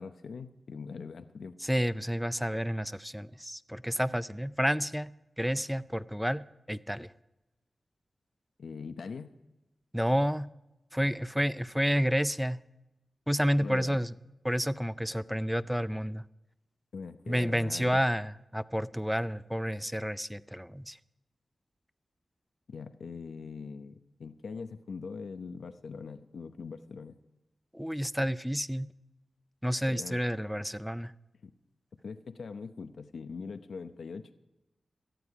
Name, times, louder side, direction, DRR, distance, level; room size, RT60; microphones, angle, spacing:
voice 1, 0.0-1.6 8.6-9.3 13.6-14.0 16.9-18.0 22.7-27.1 29.8-30.2 31.4-31.5 32.0-34.3, left 5 dB, 75° left, 0.7 m, -42 dB
voice 2, 1.6-5.1 5.4-7.1 9.9-10.5 10.9-12.6 13.3-14.1 14.4-16.2 17.3-21.0 27.7-28.9 29.6-31.1, equal, ahead, 0.4 m, -30 dB
18.0 x 14.0 x 4.8 m
wide cardioid pair, 135°, 0 cm